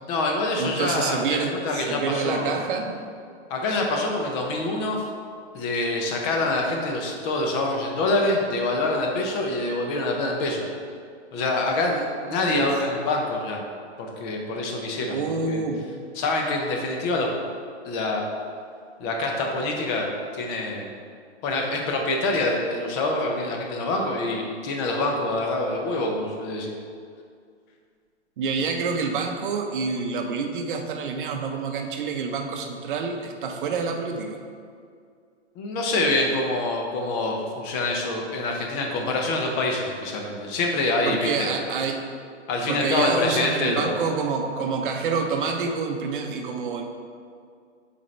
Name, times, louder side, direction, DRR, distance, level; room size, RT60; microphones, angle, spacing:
voice 1, 0.1-2.6 3.5-5.0 5.5-10.7 11.3-13.6 14.0-15.2 15.5-15.6 16.2-17.3 17.8-18.2 19.0-20.1 20.3-20.9 21.4-26.8 35.6-41.5 42.5-44.0, left 2 dB, 25° left, 1 dB, 0.6 m, -25 dB
voice 2, 0.6-2.9 12.5-12.7 15.1-15.8 28.4-34.4 41.0-42.0 42.7-46.8, right 5 dB, 45° right, 4 dB, 0.7 m, -27 dB
7.0 x 4.3 x 3.2 m, 2.2 s
hypercardioid pair, 140°, 35 cm